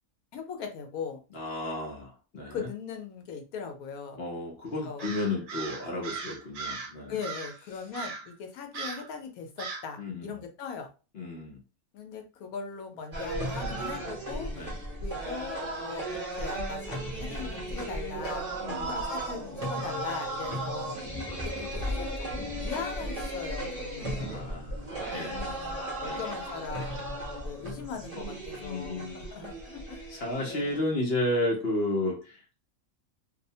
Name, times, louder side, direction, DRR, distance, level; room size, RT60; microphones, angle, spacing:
voice 1, 0.3-1.2 2.5-4.2 4.8-5.1 7.1-10.9 11.9-14.7 15.0-18.4 18.8-21.0 21.6-24.4 25.1-27.0 27.4-30.0 30.4-30.8, left 6 dB, 85° left, 4 dB, 1.1 m, -39 dB
voice 2, 1.3-2.7 4.2-7.2 10.0-10.4 11.1-11.6 14.5-14.8 18.6-19.1 20.5-20.6 24.2-25.4 26.0-26.2 28.6-29.3 30.1-32.6, left 1 dB, 55° left, -1 dB, 0.8 m, -33 dB
Crow, 5.0-6.9 7.2-7.6 7.9-8.3 8.7-9.1 9.6-9.9, right 4 dB, 65° right, 0.5 m, -38 dB
sound 1, 13.1-30.8, right 1 dB, 30° right, 0.8 m, -35 dB
Gurgling, 20.3-20.6 20.9-27.4, equal, 25° left, 0.4 m, -44 dB
2.7 x 2.0 x 2.7 m, 0.32 s
omnidirectional pair, 1.5 m